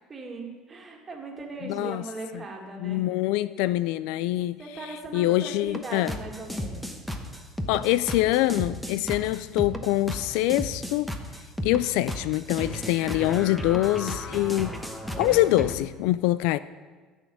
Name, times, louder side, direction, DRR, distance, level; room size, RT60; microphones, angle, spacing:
voice 1, 0.1-3.0 4.6-6.9 15.0-15.4, right 2 dB, 20° right, 0 dB, 2.1 m, -39 dB
voice 2, 1.6-2.0 2.3-2.4 2.8-4.6 5.1-6.1 7.7-11.1 11.6-14.7 15.2-16.6, left 16 dB, 75° left, 16 dB, 0.3 m, -24 dB
sound 1, 5.7-15.7, equal, 5° left, 1.0 m, -34 dB
13.5 x 6.3 x 9.2 m, 1.4 s
cardioid pair, 155°, 0 cm